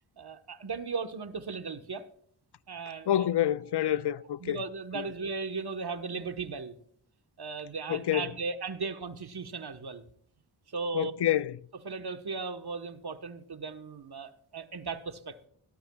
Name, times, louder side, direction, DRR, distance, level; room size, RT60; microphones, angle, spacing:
voice 1, 0.2-2.1 2.7-3.3 3.8-4.0 4.4-6.8 7.4-10.0 10.7-11.1 11.8-15.5, right 4 dB, 55° right, 1.4 m, -37 dB
sound 1, 2.7-4.3, right 1 dB, 45° left, 6.2 m, -59 dB
voice 2, 3.1-4.6 4.9-5.0 7.9-8.3 10.9-11.6, left 12 dB, 60° left, 0.6 m, -27 dB
18.0 x 12.5 x 2.4 m
cardioid pair, 50°, 46 cm